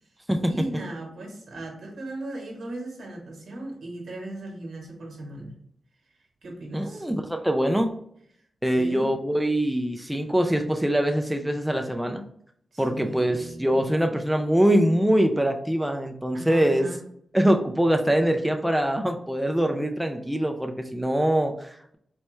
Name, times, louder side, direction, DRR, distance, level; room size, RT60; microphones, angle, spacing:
voice 1, 0.5-5.6 6.4-7.1 8.7-9.1 12.7-13.8 16.3-17.0, right 1 dB, 80° right, 1 dB, 1.1 m, -37 dB
voice 2, 6.7-7.9 8.6-12.2 12.8-16.9 17.3-22.0, right 1 dB, 5° right, 4 dB, 0.3 m, -23 dB
4.2 x 2.2 x 3.0 m, 0.68 s
wide cardioid pair, 125°, 0 cm